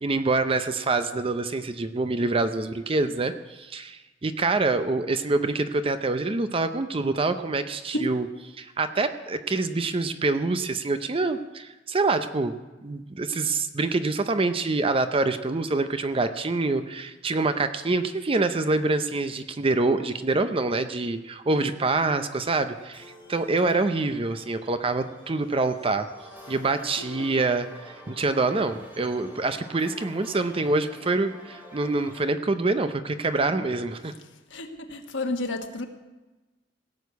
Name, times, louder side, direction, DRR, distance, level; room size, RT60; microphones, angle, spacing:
voice 1, 0.0-8.3 8.6-12.6 12.8-26.1 26.5-34.1, right 3 dB, 30° right, 10 dB, 0.6 m, -26 dB
sound 1, 22.8-32.3, equal, 10° right, 2.9 m, -48 dB
voice 2, 34.5-35.9, left 1 dB, 90° left, 4 dB, 1.4 m, -30 dB
17.0 x 6.6 x 8.1 m, 1.1 s
head